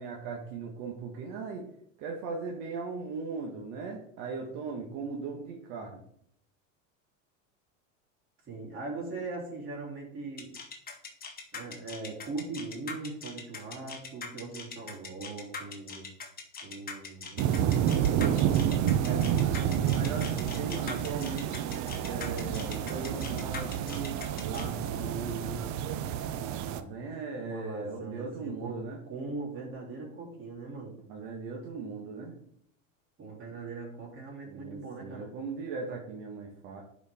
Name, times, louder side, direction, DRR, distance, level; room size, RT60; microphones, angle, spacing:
voice 1, 0.0-1.7 2.0-6.0 19.0-24.2 24.4-25.6 26.7-29.0 31.1-32.3 34.5-36.8, right 4 dB, 60° right, 0 dB, 1.6 m, -38 dB
voice 2, 8.5-10.5 11.5-16.1 16.6-18.6 27.4-31.0 33.2-35.3, right 3 dB, 30° right, -3 dB, 3.5 m, -40 dB
sound 1, 10.4-24.6, left 5 dB, 25° left, 1.4 m, -41 dB
sound 2, 17.4-26.8, right 10 dB, 45° right, 0.7 m, -29 dB
11.0 x 5.0 x 3.7 m, 0.69 s
supercardioid pair, 115°, 39 cm